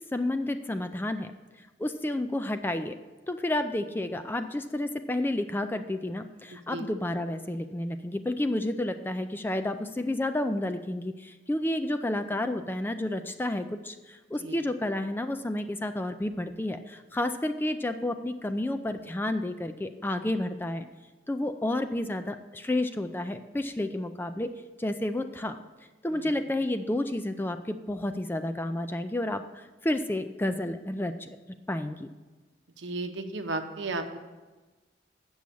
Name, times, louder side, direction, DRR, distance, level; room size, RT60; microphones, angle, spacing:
voice 1, 0.1-1.3 1.6-3.0 3.3-20.9 21.3-24.5 24.8-25.6 26.0-31.4 31.7-32.1, left 1 dB, 10° left, 9 dB, 0.3 m, -31 dB
voice 2, 32.8-34.2, right 2 dB, 80° right, 6 dB, 0.8 m, -34 dB
8.4 x 6.3 x 6.8 m, 1.2 s
head